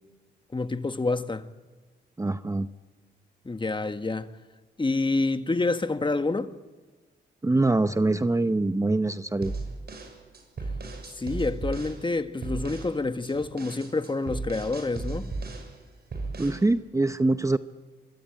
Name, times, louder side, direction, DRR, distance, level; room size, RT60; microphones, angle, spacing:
voice 1, 0.5-1.4 3.4-4.3 4.8-6.5 11.2-15.3, left 3 dB, 25° left, 1.4 m, -28 dB
voice 2, 2.2-2.7 7.4-9.5 16.4-17.6, right 2 dB, 15° right, 0.8 m, -24 dB
sound 1, 9.4-12.0 12.4-12.9 13.2-15.7 16.1-16.6, right 3 dB, 55° right, 7.1 m, -35 dB
24.5 x 23.0 x 8.9 m
cardioid pair, 65°, 19 cm